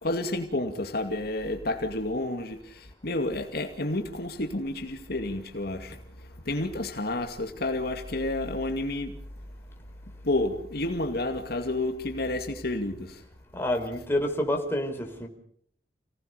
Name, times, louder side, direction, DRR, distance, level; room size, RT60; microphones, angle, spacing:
voice 1, 0.0-6.0 6.5-9.2 10.2-13.2, left 2 dB, 60° left, 2.4 m, -30 dB
voice 2, 13.5-15.3, left 1 dB, 15° left, 4.5 m, -28 dB
29.5 x 19.0 x 6.8 m
head